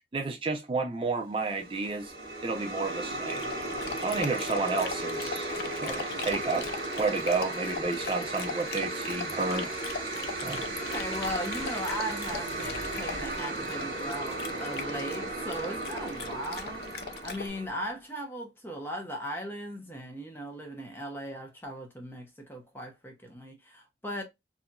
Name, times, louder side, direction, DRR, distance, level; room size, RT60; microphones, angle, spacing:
voice 1, 0.1-2.1 2.4-3.4 4.0-6.7 7.0-9.7 10.4-10.7, right 4 dB, 30° right, 0.4 m, -31 dB
sound 1, 1.4-17.9, right 2 dB, 70° right, 1.2 m, -35 dB
Dog, 3.3-17.5, left 5 dB, 60° left, 0.4 m, -40 dB
voice 2, 10.8-24.2, equal, 15° left, 0.6 m, -38 dB
sound 2, 12.2-14.0, right 1 dB, 85° right, 0.8 m, -48 dB
2.7 x 2.6 x 2.2 m
head